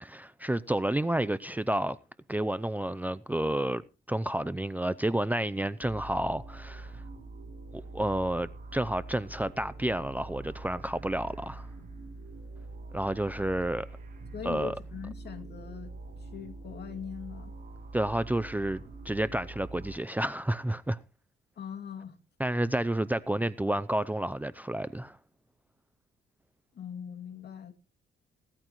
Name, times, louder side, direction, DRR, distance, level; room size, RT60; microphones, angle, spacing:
voice 1, 0.0-2.0 2.3-3.8 4.1-6.9 7.7-11.7 12.9-13.9 14.4-14.7 17.9-21.0 22.4-25.2, right 1 dB, 10° right, 0.6 m, -30 dB
sound 1, 5.8-20.0, right 2 dB, 40° right, 6.8 m, -44 dB
voice 2, 14.3-15.9 16.2-17.5 21.6-22.2 26.7-27.7, left 8 dB, 55° left, 2.6 m, -41 dB
17.5 x 13.0 x 3.1 m
cardioid pair, 90°, 20 cm